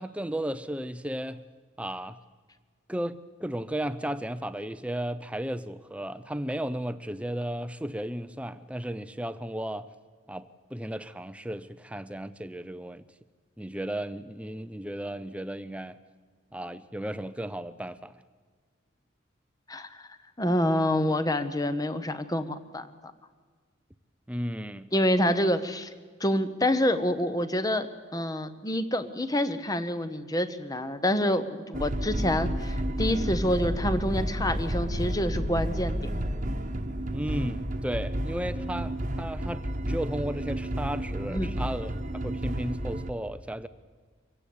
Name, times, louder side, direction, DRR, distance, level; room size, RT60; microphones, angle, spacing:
voice 1, 0.0-1.4 1.8-2.2 2.9-9.9 10.3-13.0 13.6-16.0 16.5-18.2 24.3-24.9 37.1-43.7, right 1 dB, 5° right, 13 dB, 0.6 m, -34 dB
voice 2, 19.7-20.1 20.4-22.9 24.9-25.9 26.2-36.0 41.3-41.5, left 1 dB, 20° left, 11 dB, 0.9 m, -27 dB
sound 1, 31.7-43.1, right 1 dB, 35° right, 1.2 m, -31 dB
24.5 x 15.5 x 8.6 m, 1.5 s
head